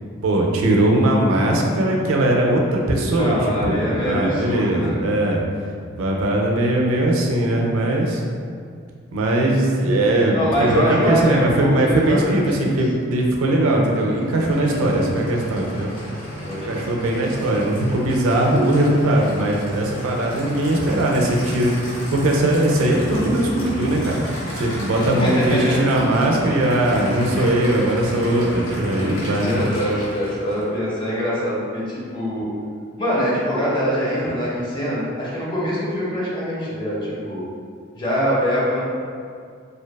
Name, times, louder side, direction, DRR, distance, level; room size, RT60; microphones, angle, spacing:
voice 1, 0.2-5.4 6.0-8.2 9.1-15.9 16.5-24.2 24.5-29.6, right 1 dB, 85° right, 0 dB, 0.4 m, -20 dB
voice 2, 3.2-5.0 10.3-12.8 14.6-15.0 16.4-17.2 25.0-25.8 27.1-27.2 29.4-32.5 33.0-37.4 38.0-38.8, equal, 25° left, -6 dB, 0.5 m, -24 dB
Aircraft / Idling, 13.8-30.7, equal, 80° left, 0.8 m, -33 dB
2.6 x 2.2 x 2.2 m, 2.2 s
head